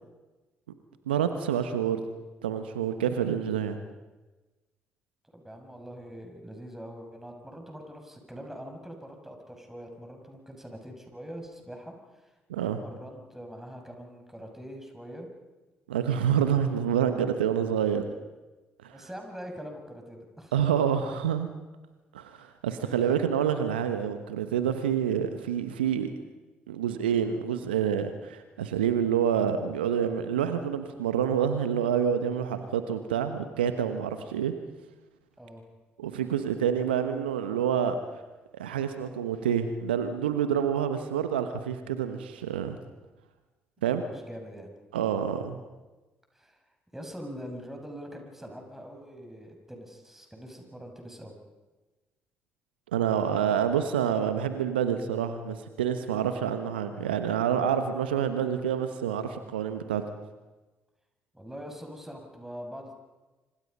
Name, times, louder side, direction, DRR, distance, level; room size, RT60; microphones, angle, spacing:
voice 1, 1.1-2.0 2.4-3.8 12.5-12.8 15.9-18.0 18.8-18.9 20.5-21.5 22.1-26.1 26.7-34.5 36.0-38.0 38.5-42.8 43.8-44.0 44.9-45.5 52.9-60.0, right 8 dB, 85° right, 9 dB, 1.1 m, -27 dB
voice 2, 5.3-12.3 12.8-15.3 18.9-20.6 23.1-23.3 35.4-35.6 44.0-44.7 46.3-46.6 46.9-51.3 61.3-62.9, equal, 5° right, 3 dB, 6.6 m, -43 dB
27.5 x 25.5 x 5.5 m, 1.2 s
figure-of-eight pair, 45°, 5 cm